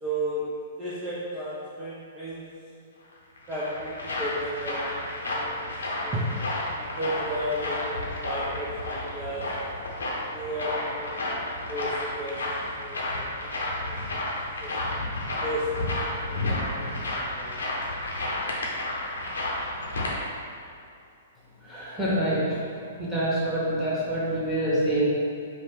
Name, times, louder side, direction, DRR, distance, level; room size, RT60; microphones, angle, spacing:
voice 1, 0.0-2.5 3.5-5.7 6.0-6.5 6.8-9.5 10.3-11.3 11.7-12.5 12.8-13.5 13.8-14.2 14.6-14.8 15.4-17.9 18.2-18.4 18.6-18.8, equal, 15° right, -9 dB, 0.7 m, -34 dB
sound 1, 3.1-20.1, left 1 dB, 70° left, 0.8 m, -31 dB
voice 2, 21.6-22.6 23.0-25.0, right 1 dB, ahead, -9 dB, 1.3 m, -26 dB
5.3 x 2.5 x 3.6 m, 2.5 s
figure-of-eight pair, 110°, 0 cm